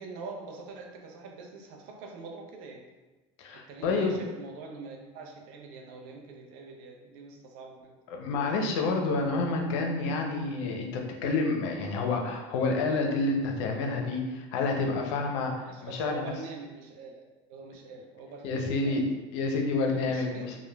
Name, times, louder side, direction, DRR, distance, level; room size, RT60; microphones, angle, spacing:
voice 1, 0.0-2.9 3.7-8.0 15.4-19.1 19.9-20.4, right 3 dB, 65° right, 1 dB, 0.5 m, -44 dB
voice 2, 3.4-4.2 8.1-15.5 15.8-16.3 18.4-19.0 19.3-20.6, left 3 dB, 75° left, 2 dB, 0.5 m, -29 dB
3.0 x 2.1 x 2.2 m, 1.2 s
supercardioid pair, 115°, 15 cm